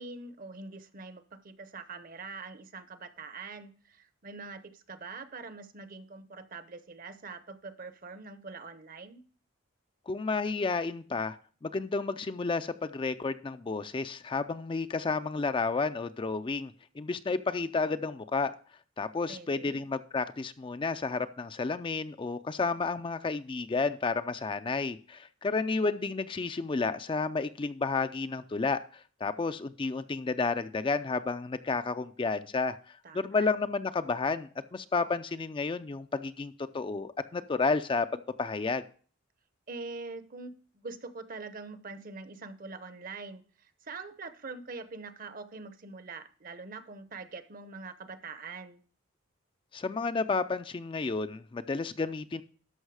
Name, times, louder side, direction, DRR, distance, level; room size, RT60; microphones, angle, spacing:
voice 1, 0.0-9.2 19.3-19.9 33.0-33.5 39.7-48.8, right 4 dB, 45° right, 12 dB, 0.8 m, -44 dB
voice 2, 10.1-11.4 11.6-18.5 19.0-38.8 49.7-52.4, left 4 dB, 25° left, 11 dB, 0.4 m, -31 dB
13.0 x 5.5 x 4.8 m, 0.43 s
head